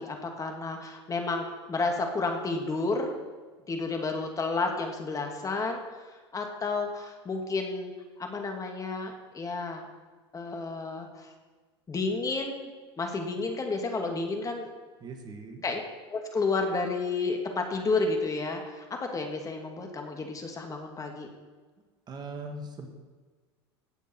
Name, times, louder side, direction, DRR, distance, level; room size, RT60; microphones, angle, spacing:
voice 1, 0.0-3.1 3.7-7.9 8.2-9.9 10.3-11.3 11.9-12.7 13.0-14.7 15.6-15.8 16.1-21.3, left 3 dB, 25° left, 3 dB, 2.3 m, -31 dB
voice 2, 15.0-15.6 22.1-22.9, right 2 dB, 30° right, 4 dB, 1.9 m, -40 dB
17.0 x 8.1 x 4.6 m, 1.4 s
hypercardioid pair, 85°, 14 cm